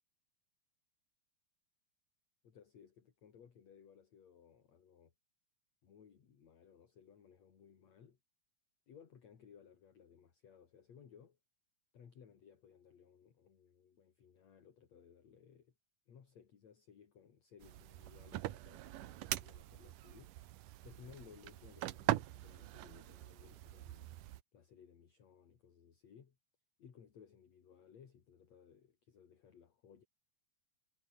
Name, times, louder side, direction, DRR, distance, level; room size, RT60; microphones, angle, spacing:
voice 1, 2.4-5.1 5.8-8.2 8.9-11.4 11.9-15.7 16.1-20.4 20.8-24.1 24.5-26.4 26.8-30.1, left 7 dB, 50° left, 3.6 m, -61 dB
sound 1, 17.6-24.4, right 15 dB, 70° right, 2.4 m, -42 dB
omnidirectional pair, 4.2 m